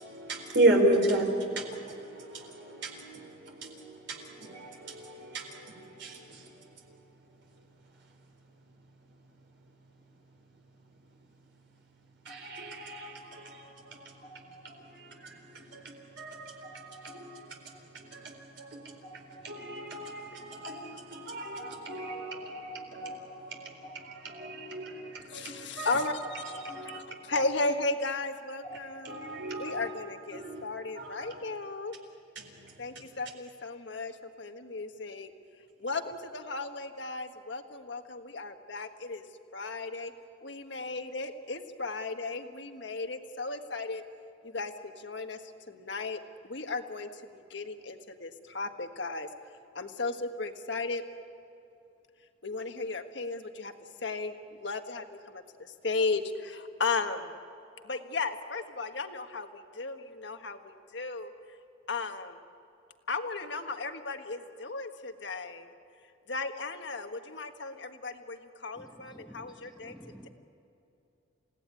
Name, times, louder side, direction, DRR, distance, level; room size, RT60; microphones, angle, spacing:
voice 1, 0.0-7.0 12.2-27.0 27.3-27.5 28.6-28.8 29.0-29.9 30.3-30.6 30.9-31.4 32.4-33.0, right 1 dB, 65° right, 2 dB, 4.1 m, -34 dB
voice 2, 25.3-26.5 26.9-29.3 29.6-31.9 32.8-35.3 35.8-39.2 39.5-40.1 40.4-44.0 44.4-44.7 45.0-45.4 45.7-46.2 46.4-49.3 49.7-51.0 52.4-53.7 54.0-57.3 57.8-59.5 59.7-61.3 61.9-62.4 63.1-65.7 66.3-69.9, left 3 dB, 65° left, 6 dB, 1.6 m, -35 dB
voice 3, 68.8-70.3, equal, 5° right, 0 dB, 1.2 m, -51 dB
29.5 x 17.5 x 9.8 m, 2.7 s
head